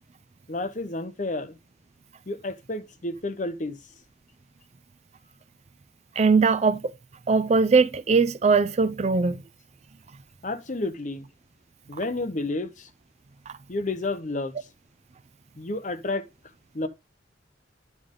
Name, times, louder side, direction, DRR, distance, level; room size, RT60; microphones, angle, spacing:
voice 1, 0.5-1.6 2.3-3.8 10.4-11.3 11.9-12.9 13.7-14.6 15.6-16.3 16.7-16.9, left 2 dB, 40° left, 0.8 m, -30 dB
voice 2, 6.2-6.9 7.3-9.4, right 4 dB, 35° right, 0.4 m, -20 dB
9.6 x 5.1 x 3.7 m
head